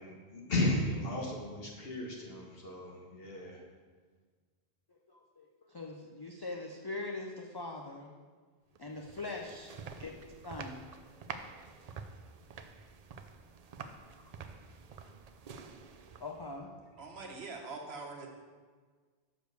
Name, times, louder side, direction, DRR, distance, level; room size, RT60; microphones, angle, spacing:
voice 1, 0.0-3.6, left 1 dB, 60° left, -1 dB, 1.6 m, -34 dB
voice 2, 4.9-8.1 8.8-9.7 10.0-10.1 10.4-10.8 14.2-14.3 16.2-16.7, left 2 dB, 30° left, 0 dB, 0.5 m, -42 dB
sound 1, 8.7-16.6, right 5 dB, 55° right, 0.4 m, -48 dB
voice 3, 17.0-18.3, right 3 dB, 70° right, 1 dB, 1.3 m, -43 dB
6.5 x 4.9 x 6.7 m, 1.5 s
omnidirectional pair, 1.1 m